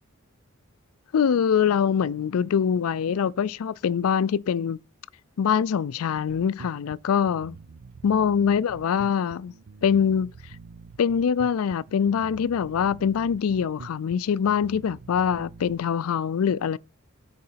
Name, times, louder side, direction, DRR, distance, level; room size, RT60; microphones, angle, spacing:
voice 1, 1.1-4.8 5.4-7.5 8.0-9.5 9.8-10.3 11.0-16.8, left 7 dB, 80° left, 0.4 m, -24 dB
Bass guitar, 6.2-15.8, right 4 dB, 90° right, 0.6 m, -46 dB
8.7 x 3.9 x 5.6 m
head